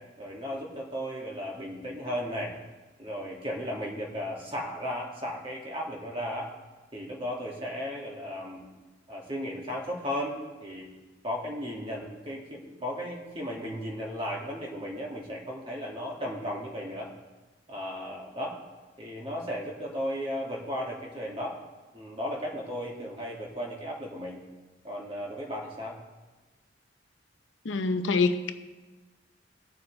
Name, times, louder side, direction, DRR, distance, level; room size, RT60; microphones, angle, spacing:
voice 1, 0.2-2.5 3.0-6.5 6.9-8.7 9.1-10.9 11.2-17.1 17.7-18.6 19.0-21.6 21.9-24.4 24.8-26.0, equal, 30° right, -2 dB, 2.1 m, -35 dB
voice 2, 27.7-28.5, left 3 dB, 90° left, 8 dB, 0.7 m, -25 dB
20.5 x 7.0 x 3.3 m, 1.2 s
head